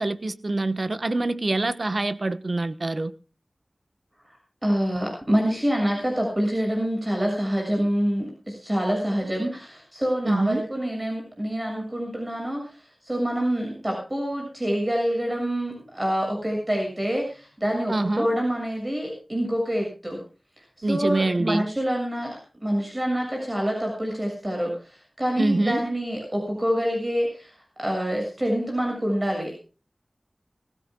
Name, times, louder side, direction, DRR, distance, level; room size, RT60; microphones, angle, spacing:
voice 1, 0.0-3.1 10.2-10.6 17.9-18.3 20.8-21.6 25.4-25.8, right 2 dB, 55° right, 1.2 m, -25 dB
voice 2, 4.2-20.2 20.6-29.5, equal, 25° right, 7.0 m, -26 dB
22.5 x 16.0 x 2.3 m
wide cardioid pair, 60°, 0 cm